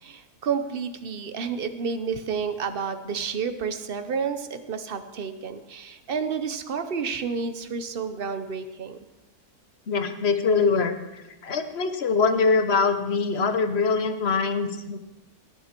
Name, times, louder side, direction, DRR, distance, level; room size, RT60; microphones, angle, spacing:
voice 1, 0.0-9.0, right 6 dB, 45° right, 9 dB, 0.9 m, -30 dB
voice 2, 9.9-15.0, left 4 dB, 50° left, 9 dB, 1.1 m, -23 dB
18.5 x 8.5 x 4.5 m, 1.0 s
omnidirectional pair, 1.6 m